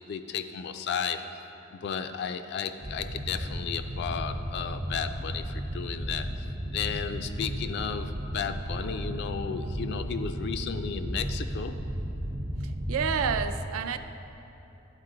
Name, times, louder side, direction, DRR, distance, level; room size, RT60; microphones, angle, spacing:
voice 1, 0.1-1.4 1.7-6.3 6.7-11.8, left 6 dB, 55° left, 9 dB, 0.3 m, -34 dB
sound 1, 2.8-13.5, equal, 40° right, 0.6 m, -34 dB
voice 2, 12.6-14.0, right 7 dB, 85° right, 10 dB, 0.4 m, -29 dB
11.5 x 4.4 x 3.8 m, 2.9 s
head